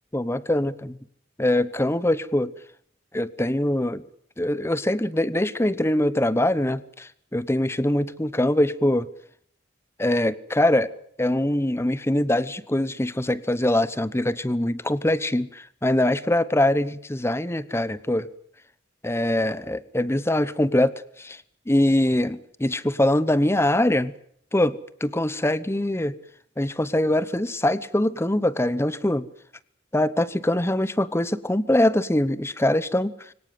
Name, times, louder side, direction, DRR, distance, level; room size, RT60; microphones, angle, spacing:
voice 1, 0.1-0.9 1.4-2.5 3.1-4.0 4.4-9.1 10.0-10.9 11.2-18.3 19.0-21.4 21.7-24.1 24.5-26.1 26.6-29.2 29.9-33.1, left 1 dB, 15° left, 17 dB, 0.9 m, -23 dB
24.5 x 18.0 x 9.4 m, 0.66 s
head